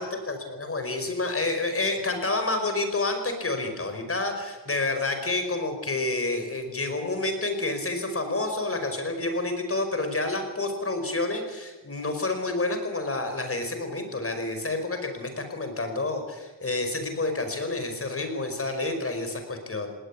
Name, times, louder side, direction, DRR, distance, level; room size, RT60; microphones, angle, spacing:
voice 1, 0.0-19.9, left 2 dB, 35° left, 6 dB, 5.3 m, -29 dB
19.0 x 19.0 x 8.5 m, 1.2 s
cardioid pair, 85°, 42 cm